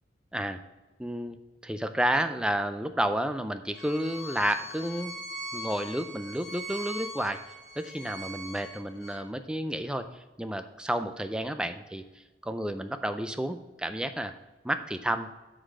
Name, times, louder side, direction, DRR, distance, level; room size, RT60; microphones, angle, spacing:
voice 1, 1.0-1.4 1.6-5.1 5.5-7.4 7.8-10.1 10.4-12.0 12.4-14.3 14.6-15.3, right 1 dB, 5° right, 9 dB, 0.3 m, -31 dB
Bowed string instrument, 3.7-9.2, equal, 75° left, 1.7 m, -41 dB
8.1 x 4.0 x 6.3 m, 1.2 s
head